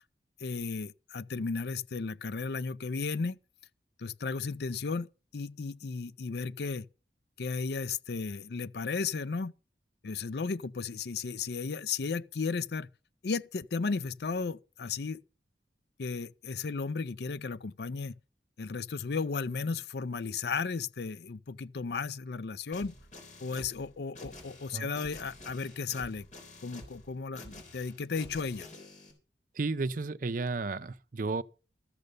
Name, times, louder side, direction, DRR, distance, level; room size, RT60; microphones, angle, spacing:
voice 1, 0.4-3.4 4.0-6.9 7.4-9.5 10.0-12.9 13.2-15.2 16.0-18.1 18.6-22.9 23.4-26.3 26.6-28.7, left 4 dB, 65° left, 0.5 m, -34 dB
sound 1, 22.7-29.1, left 2 dB, 45° left, 3.5 m, -49 dB
voice 2, 29.5-31.4, right 3 dB, 50° right, 0.5 m, -33 dB
13.5 x 6.6 x 6.6 m
head